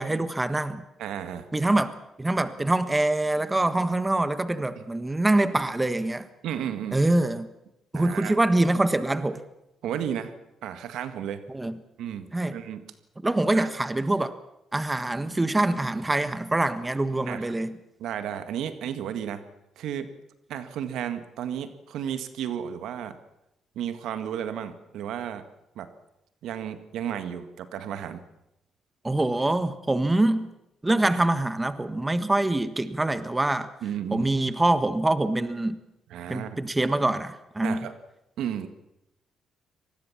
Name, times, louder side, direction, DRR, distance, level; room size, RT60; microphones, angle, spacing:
voice 1, 0.0-0.8 1.5-6.3 6.9-7.5 7.9-9.4 11.5-11.8 12.3-12.6 13.2-14.3 14.7-17.8 29.0-30.5 30.8-33.7 34.1-35.8 36.3-37.9, right 2 dB, 15° right, 12 dB, 1.5 m, -24 dB
voice 2, 1.0-1.5 6.4-7.0 7.9-8.4 9.8-10.3 10.6-11.4 12.0-12.8 13.5-13.7 17.3-17.5 18.0-19.4 19.8-20.1 20.5-23.2 23.8-25.4 25.8-25.9 26.4-28.2 33.8-34.3 36.1-36.6 37.6-37.9 38.4-38.7, right 9 dB, 80° right, 10 dB, 1.8 m, -33 dB
24.5 x 19.5 x 7.3 m, 0.86 s
cardioid pair, 90°, 0 cm